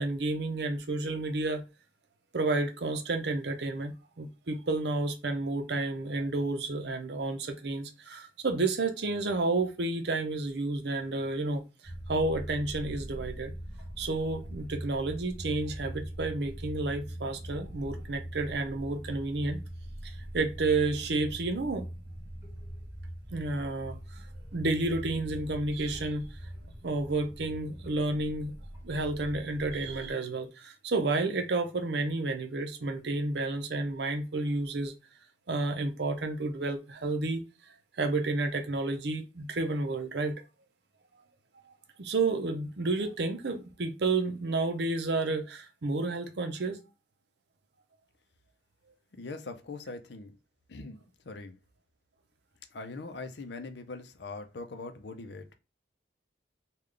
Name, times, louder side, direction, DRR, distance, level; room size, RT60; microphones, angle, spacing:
voice 1, 0.0-1.6 2.3-11.6 12.1-13.5 14.0-19.6 20.0-21.8 23.3-24.0 24.5-26.3 26.8-28.5 28.8-34.9 35.5-37.4 38.0-40.4 42.0-46.8, right 2 dB, 65° right, 0.6 m, -31 dB
sound 1, 11.8-30.1, right 1 dB, 15° right, 1.2 m, -42 dB
voice 2, 49.2-50.3 50.7-51.0 51.2-51.6 52.7-55.5, left 3 dB, 65° left, 0.6 m, -41 dB
3.3 x 2.4 x 3.7 m
head